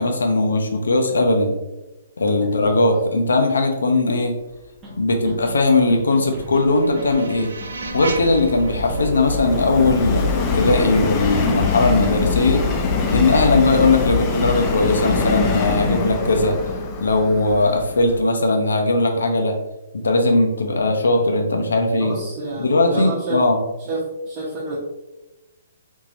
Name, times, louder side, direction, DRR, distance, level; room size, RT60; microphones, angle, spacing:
voice 1, 0.0-1.6 2.2-4.3 5.0-7.5 7.9-12.6 13.1-16.6 17.0-19.6 19.9-22.2 22.6-23.6, left 2 dB, 90° left, 4 dB, 0.6 m, -19 dB
voice 2, 2.4-2.7 22.0-23.4 23.9-24.8, right 2 dB, 35° right, -8 dB, 0.9 m, -29 dB
sound 1, 4.8-4.9 5.2-5.6 5.9-6.6 7.0-7.3 7.6-8.4 8.7-9.1 9.3-10.1 10.4-10.7 11.0-11.7, right 1 dB, 15° right, 0.9 m, -38 dB
sound 2, 5.8-10.8, right 3 dB, 90° right, 0.4 m, -36 dB
Subway metro underground, 6.9-18.2, left 4 dB, 30° left, 0.5 m, -23 dB
3.6 x 2.9 x 2.5 m, 1.0 s
hypercardioid pair, 145°, 0 cm